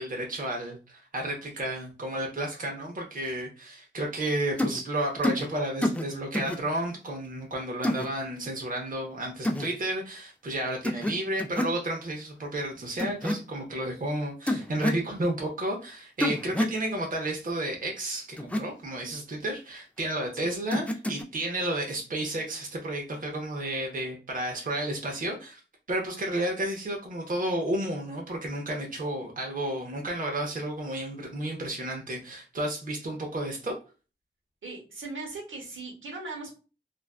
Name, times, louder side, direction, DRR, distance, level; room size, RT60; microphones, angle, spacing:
voice 1, 0.0-25.6 25.9-33.7, right 1 dB, 45° right, 1 dB, 0.6 m, -32 dB
sound 1, 4.6-4.8 5.2-5.5 5.8-6.0 6.3-6.6 7.8-8.1 9.4-9.7 10.8-11.1 11.4-11.8 13.0-13.4 14.5-15.0 16.2-16.8 18.4-18.6 20.7-21.2, left 1 dB, 5° left, 0.3 m, -27 dB
voice 2, 34.6-36.5, right 3 dB, 80° right, 0 dB, 0.9 m, -39 dB
2.4 x 2.2 x 2.3 m, 0.34 s
wide cardioid pair, 60°, 20 cm